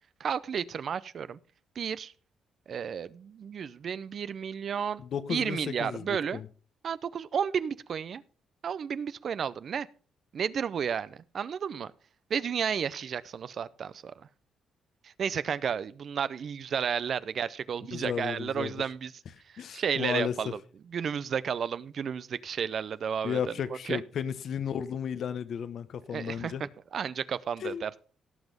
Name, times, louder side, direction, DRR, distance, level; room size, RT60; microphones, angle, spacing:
voice 1, 0.2-1.4 1.8-2.1 2.7-5.0 5.3-6.4 6.8-8.2 8.6-9.9 10.3-11.9 12.3-14.1 15.0-19.1 19.5-20.6 20.9-23.4 23.9-24.0 26.1-28.0, right 7 dB, 55° right, 0.6 m, -32 dB
voice 2, 5.1-6.5 17.9-18.7 19.6-20.5 23.2-26.6 27.6-27.8, left 8 dB, 60° left, 1.0 m, -33 dB
17.5 x 6.1 x 5.2 m
cardioid pair, 90°, 0 cm